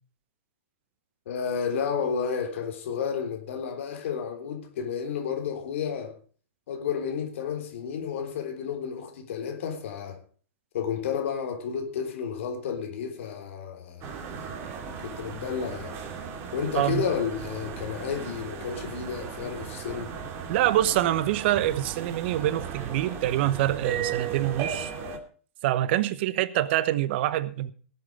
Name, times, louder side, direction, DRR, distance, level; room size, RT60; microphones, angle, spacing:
voice 1, 1.3-6.2 6.7-10.2 10.7-14.1 15.0-16.0 16.5-20.2, left 7 dB, 65° left, 3.6 m, -31 dB
sound 1, 14.0-25.2, right 7 dB, 35° right, 2.6 m, -36 dB
voice 2, 20.5-24.9 25.6-27.7, right 14 dB, 55° right, 1.1 m, -25 dB
18.5 x 8.1 x 5.0 m
hypercardioid pair, 120°, 7 cm